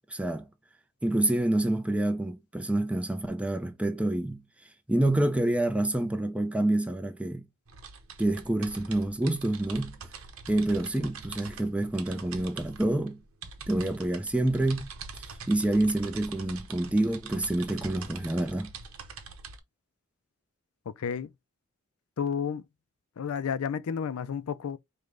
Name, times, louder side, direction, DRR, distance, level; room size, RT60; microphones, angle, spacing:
voice 1, 0.1-0.5 1.0-4.4 4.9-7.4 8.2-10.0 10.5-13.2 13.7-14.9 15.5-18.7, right 1 dB, 5° right, 0.6 m, -27 dB
sound 1, 7.7-19.6, right 5 dB, 75° right, 0.8 m, -44 dB
voice 2, 20.9-21.3 22.2-22.6 23.2-24.8, left 7 dB, 80° left, 0.4 m, -31 dB
5.1 x 2.3 x 3.7 m
head